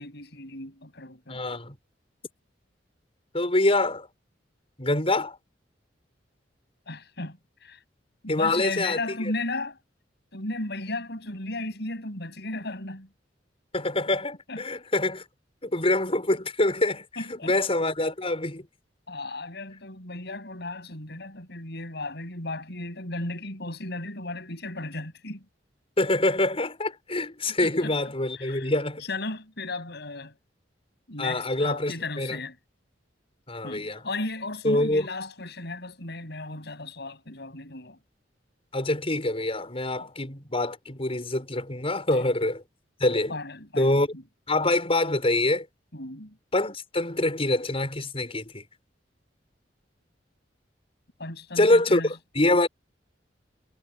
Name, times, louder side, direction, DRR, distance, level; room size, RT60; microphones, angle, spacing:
voice 1, 0.0-1.4 6.9-7.8 8.2-9.8 10.3-13.1 14.5-14.6 17.2-17.6 19.1-25.5 27.5-27.9 28.4-28.7 29.0-30.4 31.1-32.6 33.6-38.0 42.2-42.3 43.3-44.2 45.9-46.4 51.2-52.1, left 2 dB, 65° left, 7.4 m, -35 dB
voice 2, 1.3-1.8 3.3-4.1 4.8-5.4 8.3-9.3 13.7-15.2 15.6-18.7 26.0-29.0 31.2-32.4 33.5-34.0 34.6-35.1 38.7-42.6 43.0-43.3 43.8-44.1 44.5-45.7 46.5-48.7 51.6-52.7, left 2 dB, 35° left, 5.7 m, -25 dB
head